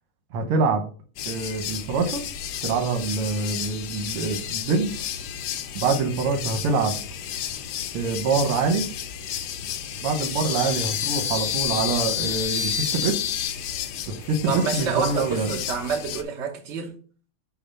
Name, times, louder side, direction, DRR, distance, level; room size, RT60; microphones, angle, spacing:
voice 1, 0.3-0.9 1.3-2.2 2.6-5.0 5.8-7.0 7.9-8.9 10.0-13.2 14.1-15.5, right 4 dB, 80° right, 1.9 m, -25 dB
sound 1, 1.2-16.2, left 9 dB, 85° left, 0.9 m, -31 dB
voice 2, 14.5-16.9, right 5 dB, 55° right, 0.7 m, -28 dB
6.6 x 2.7 x 5.5 m
omnidirectional pair, 2.4 m